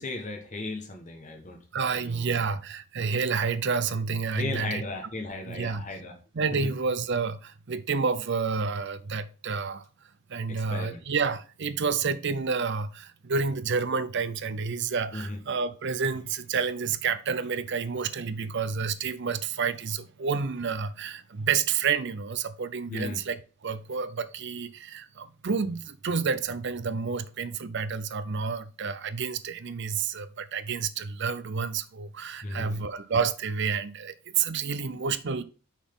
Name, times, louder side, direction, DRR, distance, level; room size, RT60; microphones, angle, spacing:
voice 1, 0.0-1.6 1.9-2.3 4.3-6.1 10.5-11.0 15.1-15.4 22.9-23.2 32.4-32.8, left 2 dB, 35° left, 1.2 m, -35 dB
voice 2, 1.7-4.8 5.4-5.8 6.3-9.9 10.3-35.4, right 5 dB, 50° right, 0.5 m, -29 dB
6.2 x 4.1 x 5.4 m
head